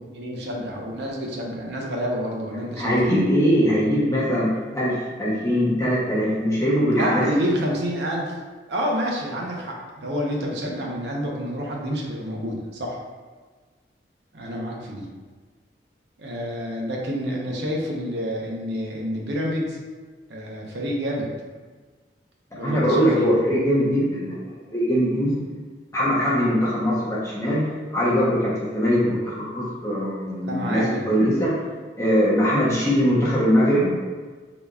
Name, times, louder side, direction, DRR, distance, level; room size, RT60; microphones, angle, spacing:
voice 1, 0.1-3.2 6.9-8.3 8.7-13.0 14.3-15.1 16.2-19.8 20.3-21.3 22.5-23.3 30.4-31.1, equal, 75° right, -2 dB, 0.7 m, -28 dB
voice 2, 2.8-7.2 22.6-25.3 25.9-27.6 27.9-31.5 32.0-33.9, equal, 15° left, -8 dB, 0.8 m, -21 dB
3.8 x 3.4 x 2.3 m, 1.4 s
head